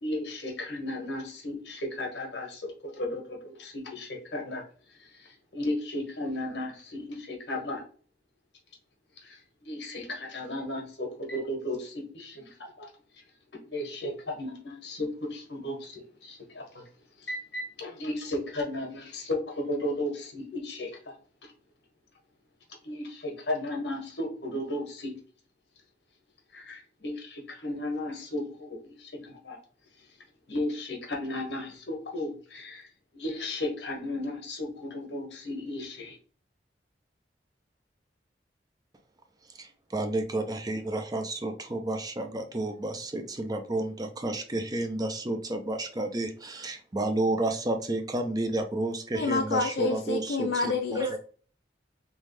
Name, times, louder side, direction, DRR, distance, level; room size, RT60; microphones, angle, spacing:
voice 1, 0.0-4.6 5.0-7.8 9.2-12.9 13.5-16.8 17.2-21.1 22.8-25.1 26.5-29.6 30.5-32.9 33.1-36.2, left 1 dB, 85° left, 1 dB, 1.5 m, -35 dB
voice 2, 39.9-43.8 44.2-45.4 45.7-46.3 46.9-50.5 51.0-51.1, right 2 dB, 20° right, 5 dB, 0.5 m, -30 dB
voice 3, 49.1-51.2, left 4 dB, 65° left, 4 dB, 0.5 m, -28 dB
3.4 x 3.2 x 3.3 m, 0.43 s
head